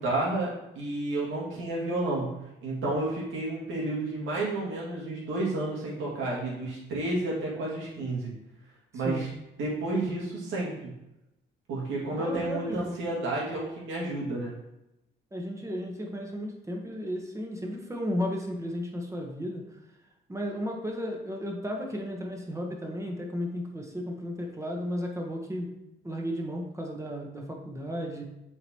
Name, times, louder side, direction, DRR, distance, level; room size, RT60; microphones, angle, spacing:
voice 1, 0.0-8.3 8.9-9.3 9.6-10.9 11.7-14.5, right 2 dB, 85° right, -4 dB, 2.1 m, -31 dB
voice 2, 12.2-12.9 15.3-19.6 20.3-25.7 26.0-28.2, equal, 15° right, 1 dB, 1.2 m, -34 dB
7.8 x 4.0 x 3.0 m, 0.90 s
cardioid pair, 90°, 20 cm